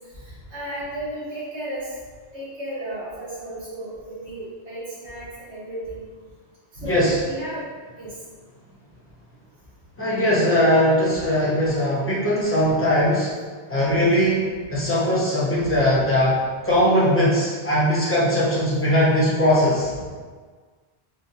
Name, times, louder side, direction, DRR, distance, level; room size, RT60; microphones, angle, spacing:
voice 1, 0.2-1.8 2.3-6.0 6.7-7.7 8.0-8.1 14.7-14.8 15.6-15.7 19.9-20.0, right 1 dB, 85° right, -10 dB, 1.6 m, -33 dB
voice 2, 6.8-7.2 10.0-13.3 13.7-14.4 14.7-16.4 16.6-19.9, equal, 15° left, -8 dB, 0.9 m, -20 dB
4.2 x 2.3 x 2.7 m, 1.5 s
omnidirectional pair, 1.1 m